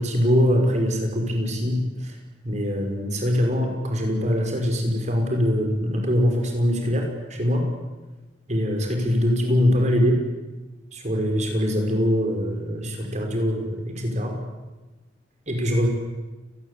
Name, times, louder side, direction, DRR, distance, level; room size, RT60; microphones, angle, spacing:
voice 1, 0.0-2.2 2.4-7.7 8.5-10.2 10.9-14.3 15.5-15.9, equal, 40° right, 3 dB, 6.0 m, -23 dB
29.5 x 20.0 x 8.6 m, 1.1 s
head